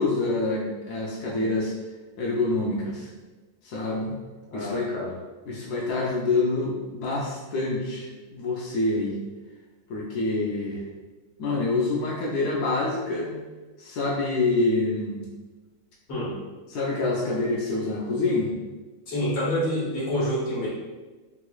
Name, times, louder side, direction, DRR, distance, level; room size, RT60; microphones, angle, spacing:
voice 1, 0.0-1.7 2.2-3.1 3.6-4.1 4.5-4.9 5.5-9.2 9.9-10.8 11.4-13.4 13.8-15.2 16.7-18.6, left 2 dB, 90° left, -4 dB, 0.8 m, -26 dB
voice 2, 4.5-5.1 16.1-16.4 19.1-20.7, equal, 40° left, -7 dB, 1.1 m, -27 dB
3.6 x 3.1 x 2.3 m, 1.2 s
omnidirectional pair, 2.3 m